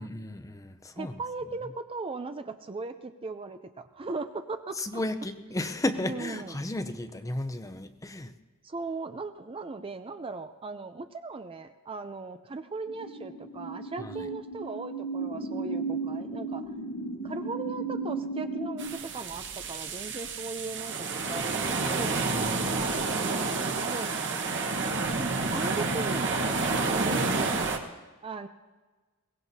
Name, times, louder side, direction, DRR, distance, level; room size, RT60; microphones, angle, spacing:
voice 1, 0.0-1.2 4.7-8.3 14.0-14.3 22.3-22.8, left 1 dB, 15° left, 9 dB, 0.6 m, -34 dB
voice 2, 1.0-4.8 6.0-6.5 8.6-16.6 17.2-24.8 25.1-27.6 28.2-28.5, right 3 dB, 25° right, 9 dB, 0.4 m, -38 dB
sound 1, 12.9-18.9, right 3 dB, 85° left, 1.5 m, -35 dB
sound 2, 18.8-27.8, right 3 dB, 55° right, 1.3 m, -29 dB
22.0 x 18.0 x 2.8 m, 1.3 s
head